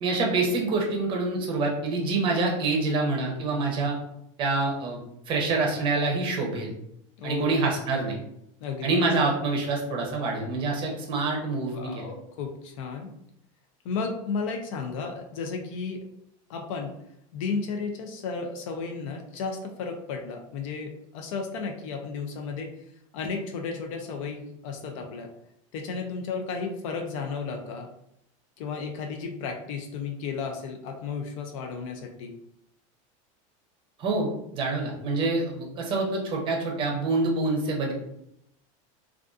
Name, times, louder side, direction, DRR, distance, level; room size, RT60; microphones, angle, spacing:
voice 1, 0.0-4.0 4.4-5.0 5.3-6.7 7.2-8.2 8.8-12.1 34.0-37.9, right 3 dB, 30° right, 0 dB, 0.6 m, -26 dB
voice 2, 7.2-7.5 8.6-9.0 11.7-13.1 13.8-16.0 16.5-16.9 17.3-22.7 23.1-25.3 25.7-27.9 28.6-32.3, left 5 dB, 70° left, 3 dB, 0.4 m, -33 dB
2.5 x 2.3 x 2.3 m, 0.76 s
supercardioid pair, 155°, 17 cm